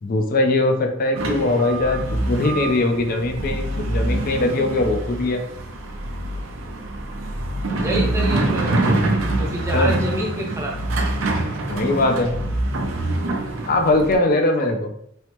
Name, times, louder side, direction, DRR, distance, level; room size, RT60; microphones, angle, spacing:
voice 1, 0.0-5.4 9.7-9.9 11.7-12.4 13.7-14.9, left 2 dB, 45° left, 4 dB, 0.4 m, -21 dB
sound 1, 1.1-14.2, right 2 dB, 75° right, 0.5 m, -25 dB
voice 2, 7.7-9.0 9.4-10.7 14.6-14.7, right 1 dB, 15° right, -2 dB, 0.6 m, -28 dB
3.1 x 2.0 x 2.9 m, 0.70 s
head